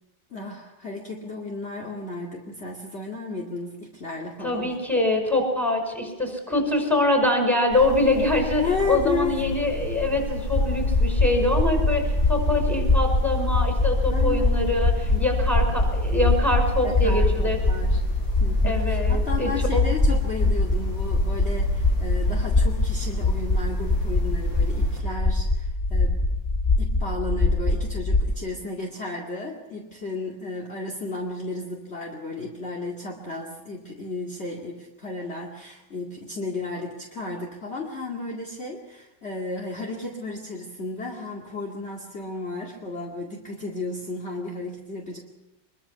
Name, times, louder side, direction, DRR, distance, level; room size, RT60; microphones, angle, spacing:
voice 1, 0.3-4.7 8.6-9.4 14.1-14.5 15.1-15.3 16.8-18.0 18.4-26.3 26.8-45.2, left 3 dB, 35° left, 0 dB, 2.5 m, -33 dB
voice 2, 4.4-8.6 8.9-17.6 18.6-19.8, left 2 dB, ahead, 2 dB, 5.7 m, -24 dB
sound 1, 7.7-25.0, left 2 dB, 90° left, 9.0 m, -32 dB
sound 2, 10.5-28.3, left 2 dB, 15° left, 0.9 m, -23 dB
24.0 x 23.0 x 5.8 m, 1.0 s
omnidirectional pair, 2.0 m